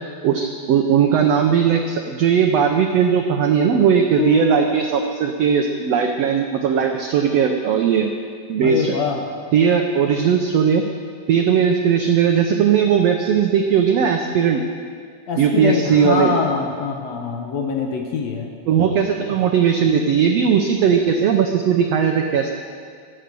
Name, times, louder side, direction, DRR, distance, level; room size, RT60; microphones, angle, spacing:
voice 1, 0.2-8.1 8.5-8.9 9.5-10.8 11.3-14.6 15.4-16.3 18.7-22.5, right 7 dB, 80° right, 4 dB, 1.4 m, -18 dB
sound 1, 4.2-6.4, left 1 dB, 80° left, 2.8 m, -28 dB
voice 2, 8.6-9.3 15.3-18.5, left 5 dB, 65° left, 3 dB, 1.9 m, -24 dB
21.5 x 7.9 x 6.8 m, 2.1 s
omnidirectional pair, 3.9 m